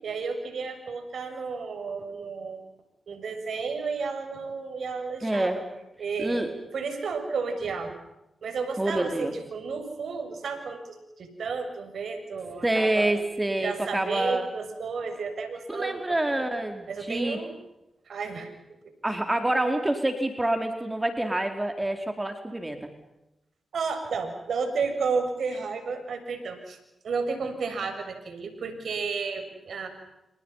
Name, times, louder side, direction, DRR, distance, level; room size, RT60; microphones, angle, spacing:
voice 1, 0.0-2.6 3.1-5.5 6.0-8.0 8.4-13.1 13.6-16.5 16.9-17.5 18.1-18.8 23.7-26.8 27.0-29.9, right 4 dB, 75° right, 7 dB, 7.1 m, -32 dB
voice 2, 5.2-5.6 6.2-6.5 8.8-9.4 12.6-14.5 15.7-17.4 19.0-22.9, right 1 dB, 20° right, 5 dB, 4.5 m, -27 dB
30.0 x 29.0 x 5.8 m, 0.92 s
supercardioid pair, 45°, 0 cm